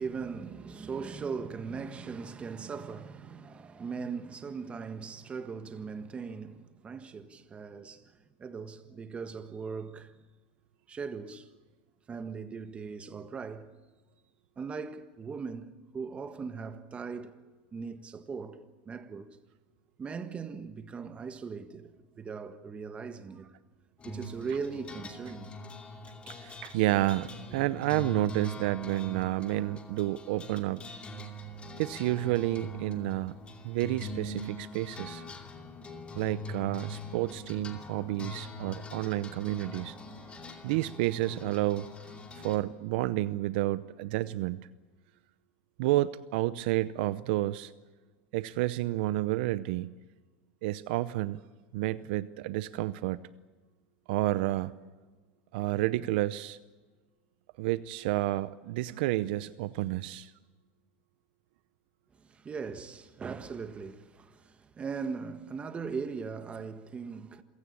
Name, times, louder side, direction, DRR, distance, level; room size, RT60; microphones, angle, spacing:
voice 1, 0.0-10.2 10.9-11.5 12.1-13.7 14.6-17.4 17.7-18.6 18.8-19.4 20.0-23.5 24.0-25.5 62.2-67.4, right 5 dB, 20° right, 1.6 m, -39 dB
sound 1, 24.0-42.6, equal, 20° left, 2.6 m, -43 dB
voice 2, 26.4-30.8 31.8-33.4 33.6-35.2 36.1-40.0 40.6-41.9 42.4-44.7 45.8-47.7 48.3-49.9 50.6-51.4 51.7-53.2 54.1-54.7 55.5-56.6 57.6-60.3, right 16 dB, 70° right, 0.7 m, -30 dB
27.5 x 16.5 x 8.6 m
supercardioid pair, 130°, 5 cm